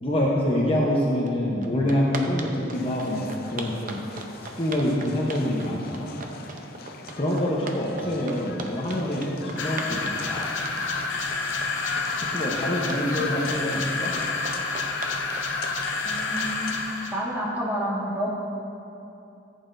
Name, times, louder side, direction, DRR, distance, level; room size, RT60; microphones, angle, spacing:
voice 1, 0.0-4.0 4.6-6.1 7.1-10.5 12.2-14.1, left 1 dB, 30° left, -4 dB, 0.9 m, -26 dB
sound 1, 1.3-1.4 1.6-17.2, right 3 dB, 45° right, 0.7 m, -39 dB
sound 2, 2.7-16.7, left 5 dB, 55° left, 0.5 m, -41 dB
sound 3, 9.6-17.2, left 3 dB, 75° left, 0.8 m, -29 dB
voice 2, 16.0-16.8 17.1-18.3, equal, 10° right, -6 dB, 1.7 m, -29 dB
14.5 x 8.2 x 2.6 m, 2.7 s
head